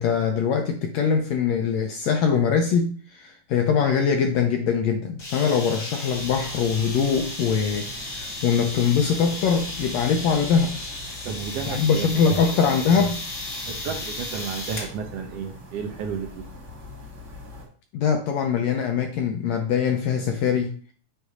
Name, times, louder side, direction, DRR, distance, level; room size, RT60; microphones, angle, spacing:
voice 1, 0.0-10.8 11.6-13.2 17.9-20.8, left 6 dB, 75° left, 4 dB, 1.6 m, -22 dB
sound 1, 5.2-14.9, left 2 dB, 35° left, 1.5 m, -34 dB
sound 2, 6.1-17.7, equal, 35° right, 1.2 m, -43 dB
voice 2, 11.2-12.4 13.7-16.4, right 6 dB, 85° right, 3 dB, 1.3 m, -32 dB
7.9 x 2.7 x 4.8 m, 0.43 s
omnidirectional pair, 3.5 m